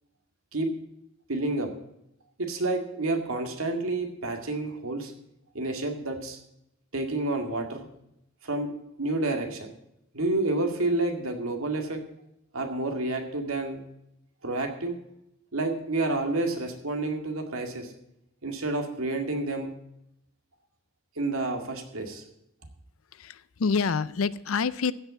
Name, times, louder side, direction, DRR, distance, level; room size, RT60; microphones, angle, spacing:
voice 1, 1.3-1.7 2.4-5.1 5.5-6.4 6.9-7.9 8.4-8.7 9.0-9.7 10.1-12.0 12.5-13.8 14.4-15.0 15.5-17.9 18.4-19.7 21.2-22.2, right 2 dB, 90° right, 4 dB, 2.1 m, -29 dB
voice 2, 23.1-24.9, left 5 dB, 80° left, 18 dB, 0.5 m, -27 dB
15.5 x 5.7 x 7.1 m, 0.81 s
head